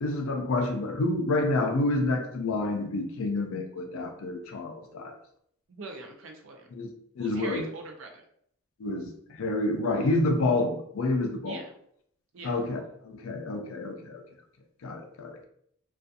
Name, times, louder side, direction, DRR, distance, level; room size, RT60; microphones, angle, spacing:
voice 1, 0.0-5.2 6.7-7.7 8.8-11.6 12.4-14.2 14.8-15.4, left 2 dB, 65° left, 4 dB, 0.4 m, -29 dB
voice 2, 5.7-6.7 7.2-8.2 11.4-11.7 12.3-12.5, right 3 dB, 65° right, 2 dB, 0.5 m, -42 dB
2.4 x 2.3 x 2.6 m, 0.68 s
head